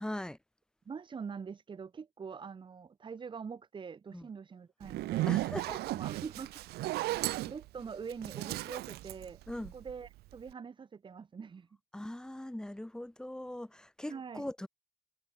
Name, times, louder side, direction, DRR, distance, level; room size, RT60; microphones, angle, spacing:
voice 1, 0.0-0.4 4.1-4.3 5.3-5.8 9.5-9.7 11.9-14.7, left 1 dB, 5° left, 0.7 m, -40 dB
voice 2, 0.9-5.3 5.9-6.6 7.1-9.4 9.7-11.7 14.1-14.5, right 6 dB, 30° right, 1.1 m, -44 dB
Zipper (clothing), 4.8-10.1, right 18 dB, 70° right, 0.5 m, -35 dB
cardioid pair, 110°, 17 cm